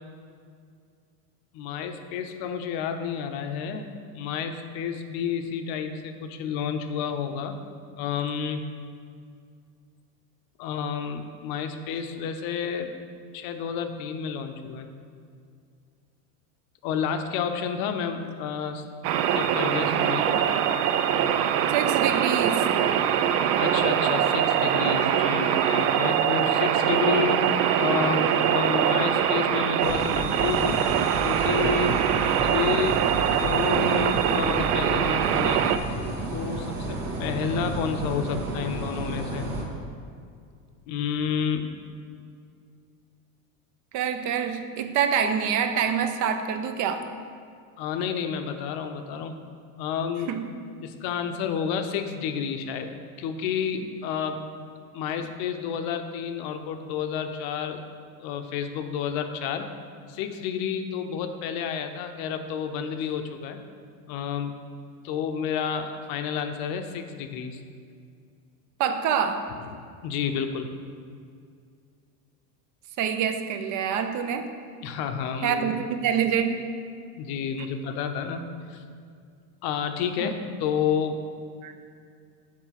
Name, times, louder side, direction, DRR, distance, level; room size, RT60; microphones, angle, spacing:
voice 1, 1.5-3.9 4.1-7.6 8.0-8.6 10.6-12.9 13.3-14.9 16.8-18.8 19.3-20.4 23.6-30.8 31.2-32.0 32.4-33.0 33.4-35.8 36.3-39.5 40.9-41.7 47.8-49.4 49.8-50.4 50.8-52.9 53.2-54.7 54.9-57.8 58.2-59.7 60.1-63.6 64.1-64.6 65.0-67.6 69.7-70.7 74.8-75.7 77.2-78.8 79.6-81.2, left 7 dB, 55° left, 7 dB, 0.7 m, -30 dB
sound 1, 19.0-35.8, right 9 dB, 80° right, 0.6 m, -23 dB
voice 2, 21.7-22.7 43.9-47.1 50.3-50.5 53.8-53.9 68.8-69.5 73.0-74.5 75.4-76.7 80.2-80.3 81.6-81.7, right 7 dB, 40° right, 8 dB, 0.6 m, -26 dB
sound 2, 29.8-39.7, right 2 dB, 65° right, 1.7 m, -32 dB
7.3 x 4.5 x 5.7 m, 2.3 s
supercardioid pair, 135°, 45 cm